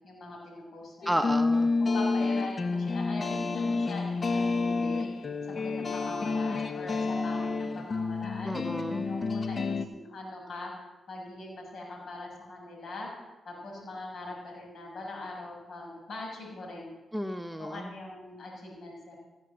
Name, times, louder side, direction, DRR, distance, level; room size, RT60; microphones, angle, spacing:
voice 1, 0.0-1.3 1.8-5.1 5.5-8.6 9.0-10.7 11.1-13.1 13.4-16.9 17.6-19.2, left 2 dB, 65° left, -1 dB, 6.8 m, -42 dB
sound 1, 1.0-9.8, left 3 dB, 50° left, 1.2 m, -29 dB
voice 2, 1.1-1.7 8.4-9.1 17.1-17.9, equal, 5° right, 7 dB, 1.0 m, -32 dB
16.0 x 7.8 x 7.8 m, 1.1 s
supercardioid pair, 50°, 0 cm